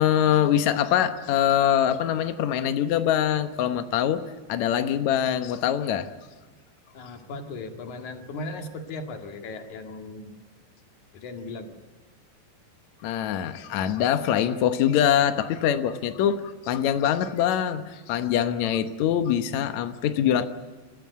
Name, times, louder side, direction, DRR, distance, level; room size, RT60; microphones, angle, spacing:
voice 1, 0.0-4.2 4.5-6.1 13.0-20.5, left 10 dB, 90° left, 9 dB, 1.6 m, -23 dB
voice 2, 6.9-10.3 11.1-11.7, left 2 dB, 50° left, 5 dB, 3.0 m, -37 dB
29.0 x 14.5 x 9.4 m, 1.3 s
omnidirectional pair, 5.0 m